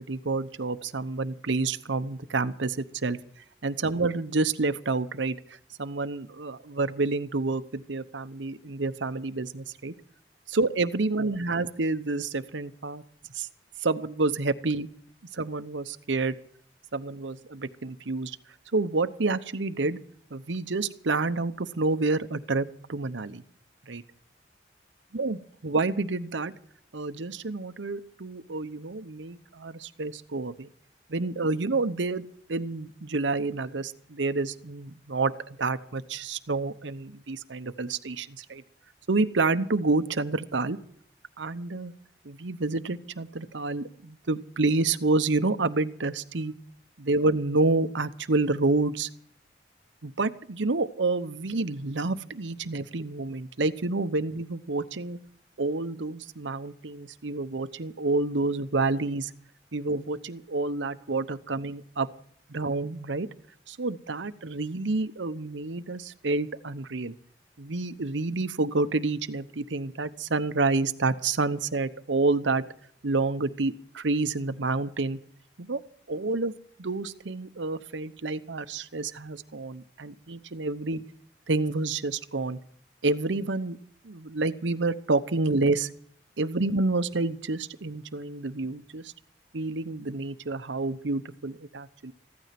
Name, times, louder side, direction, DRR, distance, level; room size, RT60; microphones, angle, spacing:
voice 1, 0.0-3.2 3.6-5.4 5.8-9.9 10.5-13.0 13.3-13.5 13.8-14.9 15.3-16.4 16.9-18.4 18.7-20.0 20.3-23.4 23.9-24.0 25.1-26.5 26.9-30.7 31.1-35.3 35.6-38.6 39.1-40.8 41.4-41.9 42.2-46.5 47.0-49.1 50.0-55.2 55.6-59.3 59.7-62.1 62.5-63.3 63.7-67.1 67.6-72.6 73.0-75.2 75.6-75.8 76.1-76.5 76.8-81.0 81.5-82.6 83.0-83.8 84.0-85.9 86.4-89.1 89.5-92.1, right 3 dB, 85° right, 12 dB, 0.9 m, -28 dB
15.5 x 12.5 x 5.9 m, 0.62 s
head